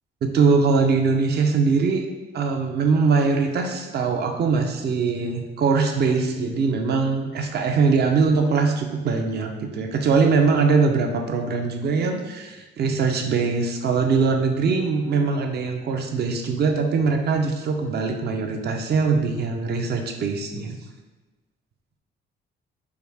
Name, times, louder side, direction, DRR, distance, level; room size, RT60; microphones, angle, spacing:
voice 1, 0.2-2.1 2.3-20.8, right 4 dB, 55° right, 4 dB, 0.5 m, -22 dB
4.7 x 2.3 x 3.4 m, 1.2 s
cardioid pair, 90°, 20 cm